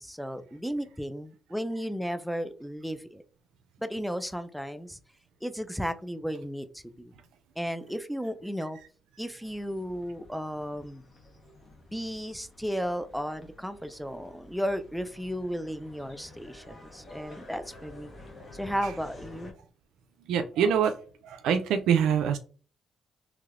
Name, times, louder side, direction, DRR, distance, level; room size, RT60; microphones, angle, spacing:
voice 1, 0.0-3.2 3.8-5.0 5.4-7.1 7.6-8.8 9.2-11.0 11.9-18.1 18.5-19.5, equal, ahead, 9 dB, 0.3 m, -34 dB
sound 1, 9.4-19.5, left 2 dB, 40° left, 1.0 m, -50 dB
voice 2, 20.3-20.9 21.2-22.4, right 8 dB, 85° right, 7 dB, 0.3 m, -24 dB
3.2 x 3.0 x 2.4 m, 0.39 s
cardioid pair, 90°, 0 cm